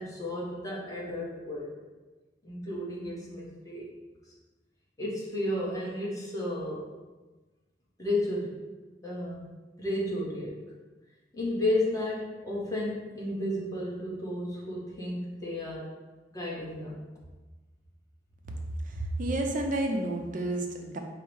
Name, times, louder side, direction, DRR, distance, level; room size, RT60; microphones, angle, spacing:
voice 1, 0.0-1.7 2.4-3.9 5.0-6.8 8.0-8.6 9.0-9.5 9.8-10.6 11.3-15.9 16.3-17.0, left 1 dB, 20° left, -5 dB, 1.0 m, -32 dB
voice 2, 18.8-21.0, right 1 dB, 45° right, 2 dB, 0.5 m, -30 dB
4.5 x 2.1 x 4.6 m, 1.2 s
head